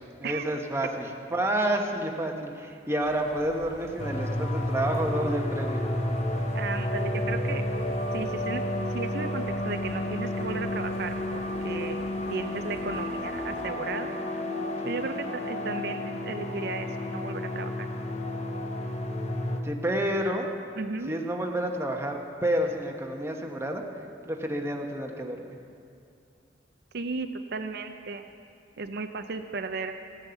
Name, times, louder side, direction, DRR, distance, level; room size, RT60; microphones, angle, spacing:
voice 1, 0.0-5.8 19.6-20.5 21.1-23.8 24.2-25.6, right 1 dB, 15° right, 2 dB, 1.1 m, -29 dB
sound 1, 3.0-13.7, equal, 5° left, 2.7 m, -47 dB
sound 2, 4.0-19.6, left 1 dB, 40° left, 0.9 m, -31 dB
voice 2, 6.5-7.6 8.1-8.6 8.9-12.0 12.3-14.1 14.9-17.9 20.8-21.1 26.9-28.3 28.8-29.9, right 4 dB, 60° right, 7 dB, 0.6 m, -35 dB
15.0 x 9.0 x 6.9 m, 2.4 s
head